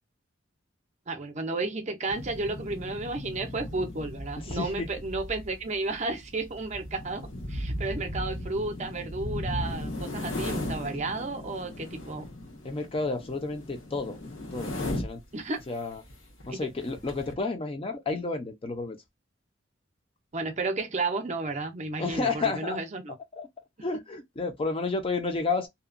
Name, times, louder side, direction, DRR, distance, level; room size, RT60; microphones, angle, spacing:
voice 1, 1.1-12.3 15.3-15.6 16.5-16.6 20.3-23.2, right 3 dB, 35° right, 0.5 m, -32 dB
sound 1, 2.1-15.3 15.9-16.1 16.4-16.5 16.8-17.3, left 1 dB, 80° left, 1.0 m, -37 dB
voice 2, 4.4-4.9 12.6-14.2 14.5-15.2 15.7-16.0 16.4-19.0 22.0-22.8 23.3-23.5 23.8-25.7, left 3 dB, 30° left, 0.5 m, -31 dB
2.7 x 2.2 x 2.4 m
head